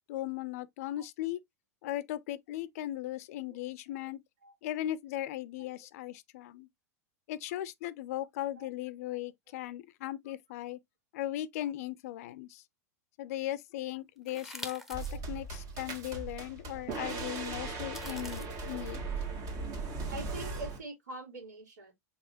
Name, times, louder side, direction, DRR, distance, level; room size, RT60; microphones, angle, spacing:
voice 1, 0.1-1.4 1.8-4.2 4.6-6.7 7.3-10.8 11.1-12.6 13.2-19.0, left 14 dB, 60° left, 0.5 m, -38 dB
sound 1, 14.3-15.2 15.7-15.8 17.8-18.5, equal, 5° right, 0.9 m, -45 dB
voice 2, 14.7-15.2 16.7-16.8 20.1-21.9, right 3 dB, 80° right, 2.7 m, -44 dB
sound 2, 14.9-20.8, right 3 dB, 40° right, 1.5 m, -38 dB
4.9 x 3.5 x 2.6 m
hypercardioid pair, 95°, 9 cm